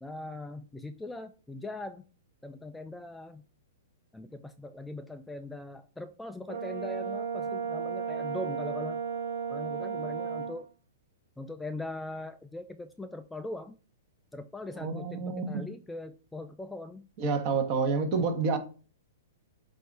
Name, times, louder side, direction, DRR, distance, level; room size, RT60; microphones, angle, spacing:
voice 1, 0.0-2.1 2.4-3.4 4.1-9.0 9.5-10.7 11.4-13.8 14.3-17.1, left 2 dB, 5° left, 0.3 m, -41 dB
Brass instrument, 6.5-10.6, right 6 dB, 80° right, 1.1 m, -34 dB
voice 2, 14.8-15.6 17.2-18.6, right 4 dB, 40° right, 1.3 m, -28 dB
7.9 x 2.7 x 4.7 m
hypercardioid pair, 145°, 0 cm